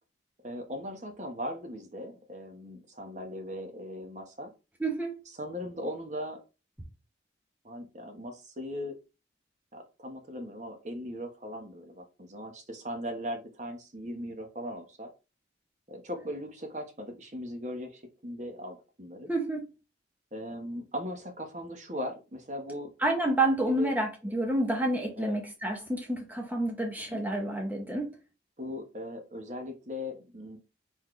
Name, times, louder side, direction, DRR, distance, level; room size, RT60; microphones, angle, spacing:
voice 1, 0.4-4.5 5.4-6.4 7.6-9.0 9.7-15.1 15.9-19.3 20.3-22.9 23.8-23.9 25.2-25.4 27.0-27.2 28.6-30.6, equal, 40° right, 1.2 m, -39 dB
voice 2, 4.8-5.2 19.3-19.6 23.0-28.1, right 1 dB, 10° right, 0.7 m, -29 dB
4.2 x 4.1 x 3.1 m
head